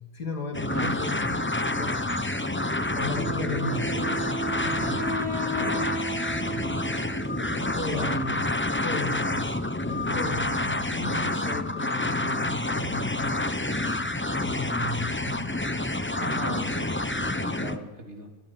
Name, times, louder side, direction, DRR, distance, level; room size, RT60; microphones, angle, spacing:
voice 1, 0.0-1.4 1.8-2.3 2.9-4.2 4.4-5.5 6.2-9.6 9.9-13.3 14.4-15.5, left 2 dB, 70° left, 4 dB, 3.2 m, -36 dB
sound 1, 0.5-17.8, left 2 dB, 15° left, 0.4 m, -28 dB
Wind instrument woodwind instrument, 3.1-7.9, right 2 dB, 40° left, 4.1 m, -34 dB
voice 2, 5.5-6.0 7.9-8.2 16.2-16.9 17.2-18.3, right 1 dB, 40° right, 2 dB, 3.8 m, -38 dB
20.5 x 15.0 x 9.4 m, 1.0 s
omnidirectional pair, 1.8 m